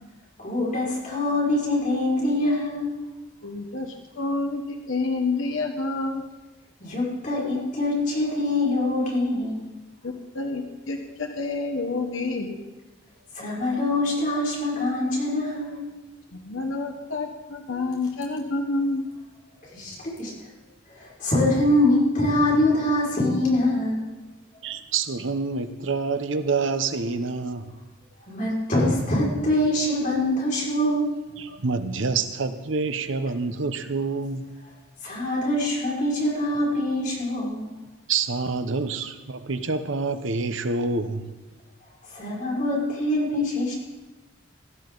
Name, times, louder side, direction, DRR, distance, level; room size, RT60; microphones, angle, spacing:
voice 1, 0.4-3.0 6.8-9.6 13.3-15.9 19.7-20.3 20.9-24.0 24.5-24.6 28.3-31.1 35.0-37.7 42.1-43.7, left 1 dB, 40° left, -5 dB, 5.8 m, -24 dB
voice 2, 3.4-6.2 10.0-12.6 16.3-19.0, left 3 dB, 85° left, 4 dB, 1.4 m, -28 dB
voice 3, 24.6-27.8 31.4-34.5 38.1-41.3, right 4 dB, 75° right, 9 dB, 0.9 m, -27 dB
16.5 x 13.5 x 4.0 m, 1.1 s
head